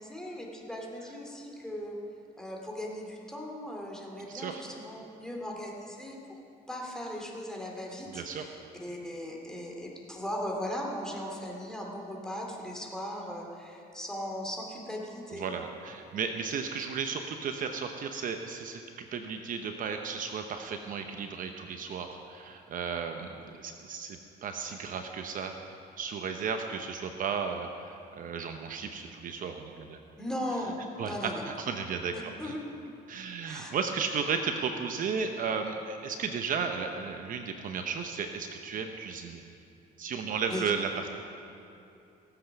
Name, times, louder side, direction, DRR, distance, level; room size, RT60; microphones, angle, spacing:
voice 1, 0.0-2.0 2.4-6.2 6.7-8.5 8.8-15.5 30.2-30.8 31.0-31.4 32.1-32.6 33.5-33.7 40.5-40.6, left 1 dB, 5° left, -1 dB, 2.4 m, -38 dB
voice 2, 4.2-4.6 8.1-8.4 15.3-25.6 26.0-30.0 31.0-32.5 33.1-39.4 40.0-41.1, right 6 dB, 55° right, 5 dB, 0.8 m, -34 dB
17.5 x 7.9 x 5.9 m, 2.8 s
cardioid pair, 110°, 17 cm